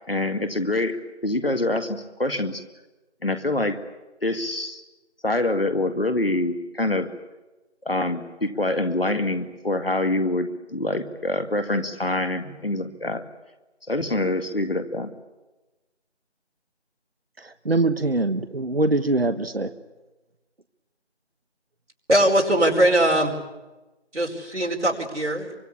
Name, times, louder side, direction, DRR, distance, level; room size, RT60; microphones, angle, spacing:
voice 1, 0.1-1.0 1.2-2.6 3.2-3.8 4.2-4.8 5.2-7.1 7.9-13.2 13.9-15.1, left 2 dB, 55° left, 8 dB, 2.2 m, -25 dB
voice 2, 17.4-19.7, right 2 dB, 60° right, 11 dB, 1.3 m, -23 dB
voice 3, 22.1-23.4 24.1-25.5, right 1 dB, 90° right, 0 dB, 5.0 m, -21 dB
24.5 x 23.0 x 8.5 m, 1.1 s
figure-of-eight pair, 175°, 34 cm